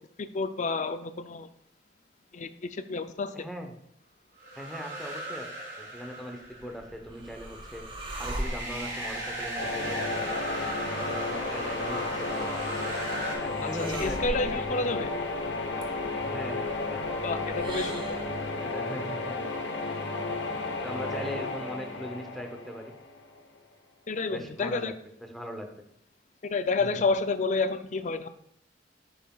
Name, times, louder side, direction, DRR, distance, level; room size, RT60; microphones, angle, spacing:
voice 1, 0.2-1.5 2.3-3.3 14.0-15.1 17.2-18.2 24.1-24.9 26.4-28.3, left 3 dB, 45° left, 10 dB, 0.4 m, -29 dB
voice 2, 3.3-3.8 4.6-5.5 5.8-7.8 8.2-10.6 10.9-12.6 13.4-14.2 14.7-15.1 16.2-17.0 18.6-19.4 20.8-22.9 24.3-25.7 26.8-27.0, equal, ahead, 4 dB, 0.7 m, -40 dB
sound 1, 4.4-6.9 8.0-13.3, right 1 dB, 55° right, 3.0 m, -37 dB
sound 2, 6.5-18.5, right 1 dB, 30° right, 0.8 m, -42 dB
sound 3, 9.6-23.4, left 3 dB, 85° left, 0.8 m, -33 dB
10.5 x 5.7 x 2.3 m, 0.72 s
head